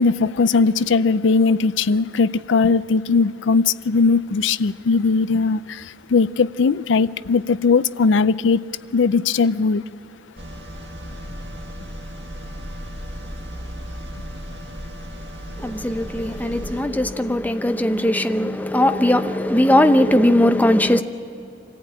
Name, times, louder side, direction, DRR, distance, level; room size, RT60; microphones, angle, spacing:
voice 1, 0.0-8.6 8.9-9.8, left 4 dB, 85° left, 0.5 m, -19 dB
sound 1, 10.4-16.8, equal, 75° right, 2.0 m, -35 dB
voice 2, 15.6-21.0, left 1 dB, 10° left, 0.7 m, -19 dB
25.5 x 15.0 x 8.7 m
head